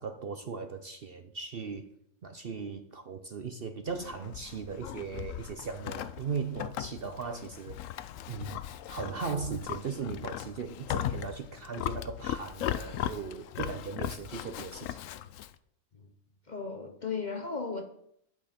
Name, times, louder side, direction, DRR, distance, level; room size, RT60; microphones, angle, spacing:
voice 1, 0.0-1.9 2.2-7.9 8.3-8.6 8.9-15.0, right 5 dB, 55° right, 0.7 m, -38 dB
Livestock farm animals working animals, 3.9-15.5, left 11 dB, 70° left, 0.9 m, -38 dB
voice 2, 16.5-17.8, left 4 dB, 40° left, 0.8 m, -35 dB
11.0 x 8.2 x 4.3 m
omnidirectional pair, 1.5 m